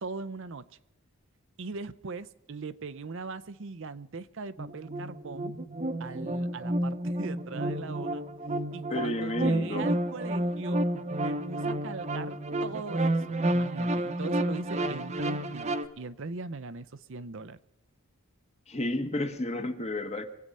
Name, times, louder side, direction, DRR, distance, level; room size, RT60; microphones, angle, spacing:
voice 1, 0.0-0.7 1.6-5.5 6.0-8.2 8.7-17.6, right 4 dB, 60° right, 13 dB, 0.6 m, -40 dB
sound 1, 4.6-15.8, right 1 dB, 30° right, 0.9 m, -30 dB
voice 2, 8.9-9.9 18.7-20.2, left 1 dB, 30° left, 6 dB, 1.4 m, -31 dB
24.0 x 8.8 x 5.4 m, 0.89 s
head